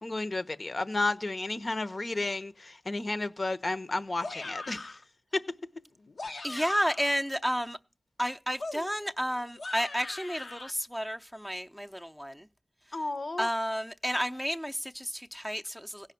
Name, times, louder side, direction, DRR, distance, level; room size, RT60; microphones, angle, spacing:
voice 1, 0.0-4.9 5.3-5.4 6.5-6.7 12.9-13.5, left 2 dB, 55° left, 1.0 m, -32 dB
sound 1, 4.2-5.0 6.0-7.2 8.6-10.7, left 3 dB, 80° left, 1.1 m, -41 dB
voice 2, 6.4-7.8 8.2-12.5 13.4-16.1, equal, ahead, 0.6 m, -31 dB
16.5 x 5.7 x 9.2 m
wide cardioid pair, 60°, 0 cm